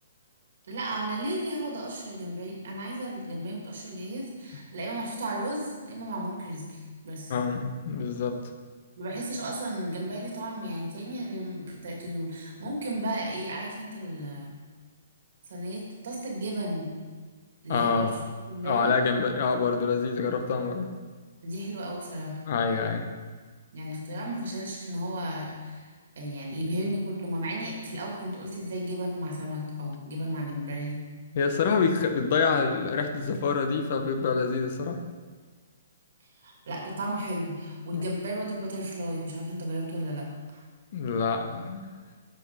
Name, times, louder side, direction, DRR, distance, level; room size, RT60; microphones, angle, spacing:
voice 1, 0.7-7.3 9.0-14.5 15.5-17.0 17.6-18.1 18.5-18.9 21.4-22.4 23.7-25.9 26.2-31.0 36.4-40.6, right 1 dB, 65° right, -2 dB, 2.3 m, -34 dB
voice 2, 7.3-8.4 17.7-18.1 18.6-20.9 22.5-23.1 31.3-35.0 37.9-38.1 40.9-41.9, left 5 dB, 50° left, 6 dB, 0.9 m, -26 dB
7.6 x 5.3 x 4.2 m, 1.5 s
hypercardioid pair, 145°, 0 cm